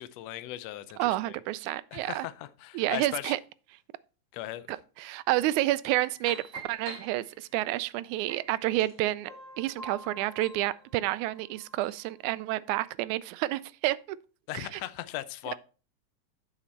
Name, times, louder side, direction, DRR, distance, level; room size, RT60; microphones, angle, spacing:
voice 1, 0.0-1.4 1.9-3.4 4.3-4.8 14.5-15.6, left 14 dB, 75° left, 1.6 m, -38 dB
voice 2, 1.0-2.3 2.7-3.4 4.7-9.3 9.6-14.0 14.5-14.8, right 16 dB, 85° right, 1.9 m, -29 dB
sound 1, 5.9-7.7 8.3-12.1, right 2 dB, 45° right, 5.7 m, -46 dB
8.8 x 7.1 x 4.3 m
omnidirectional pair, 3.4 m